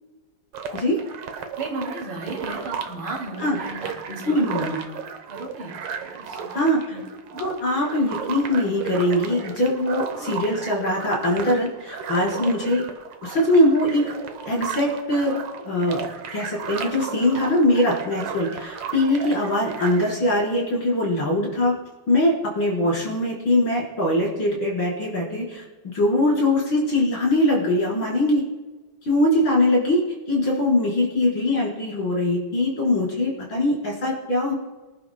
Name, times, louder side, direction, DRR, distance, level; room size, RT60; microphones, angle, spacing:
sound 1, 0.5-20.2, right 6 dB, 85° right, 1.9 m, -34 dB
voice 1, 1.6-4.6 5.3-5.8 6.1-6.4 6.9-7.0 12.3-12.5, right 2 dB, 70° right, -1 dB, 3.4 m, -35 dB
voice 2, 4.3-4.8 6.5-7.0 7.4-12.8 13.2-14.0 14.5-15.4 15.6-16.0 16.3-21.8 22.1-28.4 29.0-30.0 30.3-34.5, left 1 dB, 65° left, -5 dB, 5.3 m, -22 dB
24.5 x 11.0 x 2.2 m, 1.2 s
omnidirectional pair, 2.3 m